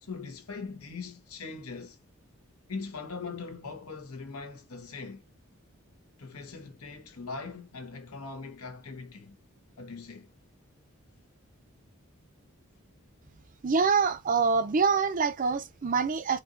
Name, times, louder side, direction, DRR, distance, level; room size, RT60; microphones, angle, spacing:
voice 1, 0.0-2.0 2.7-5.2 6.2-9.4 9.8-10.3, left 4 dB, 85° left, 1.2 m, -41 dB
voice 2, 13.6-16.4, right 5 dB, 35° right, 0.4 m, -25 dB
4.4 x 2.6 x 2.5 m
head